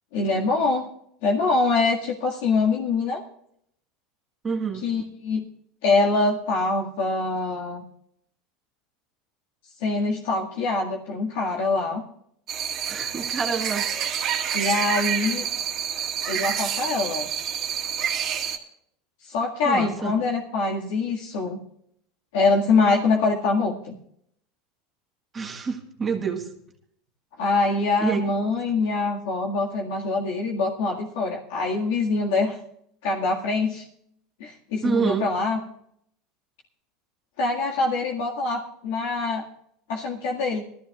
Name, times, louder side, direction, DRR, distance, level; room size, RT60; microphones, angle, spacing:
voice 1, 0.1-0.9 1.2-3.2 4.8-5.4 5.8-7.8 9.8-12.0 14.5-15.5 16.3-17.3 19.2-21.6 22.3-24.0 27.4-32.6 33.0-33.9 34.4-35.6 37.4-39.4 39.9-40.6, left 3 dB, 75° left, -1 dB, 1.9 m, -24 dB
voice 2, 4.4-4.9 12.8-13.8 19.6-20.2 25.3-26.5 28.0-28.2 34.8-35.3, right 6 dB, 20° right, 2 dB, 1.5 m, -27 dB
sound 1, 12.5-18.6, right 8 dB, 35° right, 1.8 m, -28 dB
20.0 x 14.0 x 2.4 m, 0.70 s
supercardioid pair, 150°, 0 cm